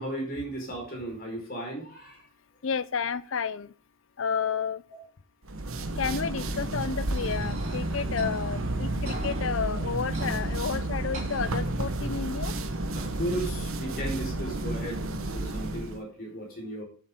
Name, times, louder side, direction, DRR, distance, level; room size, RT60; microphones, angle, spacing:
voice 1, 0.0-2.2 9.0-9.2 12.9-15.0 15.3-16.8, right 1 dB, 45° left, 1 dB, 4.6 m, -35 dB
voice 2, 2.6-3.7 4.2-4.8 6.0-12.5, left 6 dB, 65° left, 17 dB, 0.6 m, -31 dB
sound 1, 5.4-16.0, right 2 dB, 75° right, 1.3 m, -31 dB
sound 2, 7.1-12.1, right 1 dB, 35° right, 3.3 m, -41 dB
11.0 x 7.6 x 3.7 m, 0.41 s
head